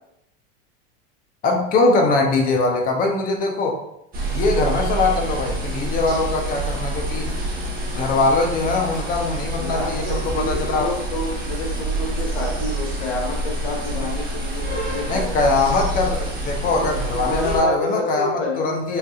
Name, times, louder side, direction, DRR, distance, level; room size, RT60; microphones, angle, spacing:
voice 1, 1.4-3.8 4.2-7.3 7.9-10.9 15.1-19.0, left 3 dB, 30° left, 1 dB, 0.6 m, -21 dB
sound 1, 4.1-17.6, right 2 dB, 30° right, 1.0 m, -27 dB
voice 2, 9.6-15.7 17.1-19.0, left 3 dB, 90° left, 0 dB, 1.1 m, -29 dB
3.8 x 3.2 x 2.3 m, 0.81 s
supercardioid pair, 140°, 30 cm